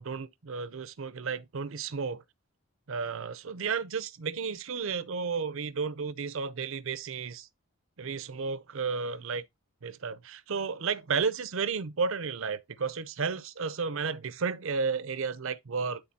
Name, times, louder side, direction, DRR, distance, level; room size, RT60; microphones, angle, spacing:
voice 1, 0.0-2.2 2.9-7.5 8.0-9.4 9.8-16.0, right 5 dB, 60° right, 0.6 m, -32 dB
10.5 x 3.9 x 2.8 m
head